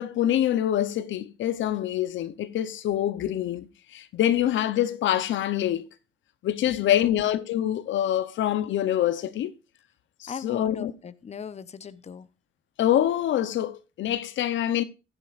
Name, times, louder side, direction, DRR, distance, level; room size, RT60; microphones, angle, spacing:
voice 1, 0.0-5.9 6.4-9.5 10.2-10.9 12.8-14.8, left 11 dB, 75° left, 0.7 m, -25 dB
voice 2, 6.7-7.2 10.3-12.3, left 7 dB, 35° left, 0.7 m, -38 dB
15.5 x 9.0 x 2.4 m
cardioid pair, 90°, 20 cm